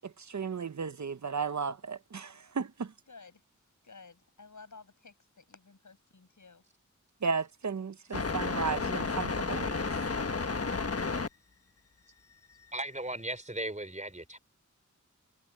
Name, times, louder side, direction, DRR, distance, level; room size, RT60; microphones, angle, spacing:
voice 1, 0.3-2.9 7.2-9.8, right 5 dB, 65° right, 0.8 m, -34 dB
voice 2, 3.1-3.4 3.8-6.6 10.8-11.1, left 4 dB, 75° left, 6.8 m, -53 dB
sound 1, 8.1-11.3, left 4 dB, 50° left, 1.3 m, -32 dB
voice 3, 12.7-14.4, right 1 dB, 25° right, 4.1 m, -37 dB
wide cardioid pair, 70°, 31 cm